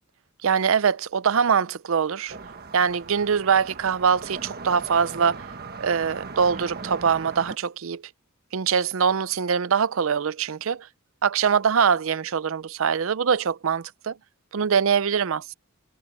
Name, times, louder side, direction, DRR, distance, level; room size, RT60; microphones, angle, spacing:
voice 1, 0.4-2.4 2.7-5.5 5.8-8.0 8.5-10.9 11.2-14.2 14.5-15.5, right 6 dB, 70° right, 0.5 m, -23 dB
sound 1, 2.3-7.6, right 4 dB, 50° right, 1.4 m, -39 dB
head